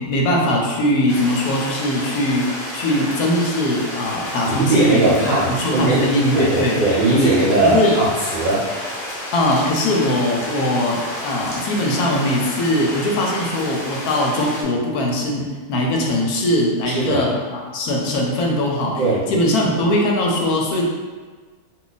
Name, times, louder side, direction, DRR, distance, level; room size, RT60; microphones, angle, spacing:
voice 1, 0.0-2.5 2.7-5.2 5.5-6.8 7.2-7.3 7.6-8.0 9.3-19.0 19.3-20.8, left 1 dB, 75° left, -1 dB, 1.0 m, -20 dB
sound 1, 1.1-14.6, left 1 dB, 50° left, 0.7 m, -31 dB
voice 2, 4.5-6.1 6.3-8.1 8.3-8.6 16.9-17.2 19.0-19.3, right 2 dB, 60° right, -9 dB, 0.5 m, -18 dB
2.5 x 2.3 x 3.9 m, 1.4 s
omnidirectional pair, 1.7 m